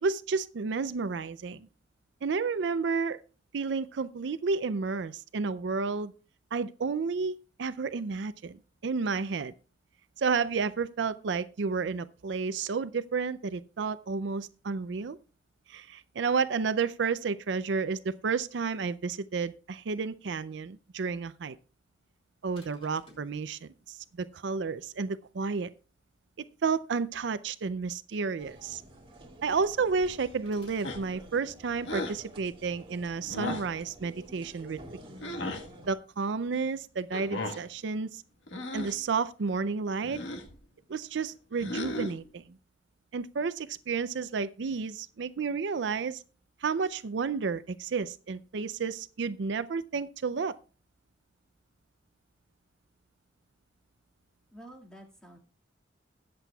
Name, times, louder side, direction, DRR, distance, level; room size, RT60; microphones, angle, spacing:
voice 1, 0.0-1.7 2.2-3.2 3.5-6.1 6.5-9.5 10.2-15.2 15.7-21.6 22.4-25.7 26.6-28.8 29.4-35.0 35.8-38.2 38.7-40.2 40.9-42.6 43.1-46.2 46.6-50.5, right 5 dB, 70° right, 0.4 m, -31 dB
sound 1, 22.6-23.4 30.5-31.0, equal, 30° left, 4.0 m, -54 dB
sound 2, 28.4-35.9, right 1 dB, 30° right, 1.9 m, -50 dB
sound 3, 30.8-31.3 31.8-32.2 33.3-33.8 35.2-35.7 37.1-37.7 38.5-39.0 40.0-40.5 41.6-42.3, left 1 dB, 75° left, 1.4 m, -36 dB
voice 2, 54.5-55.4, right 1 dB, 5° left, 2.0 m, -49 dB
21.0 x 7.6 x 2.3 m
head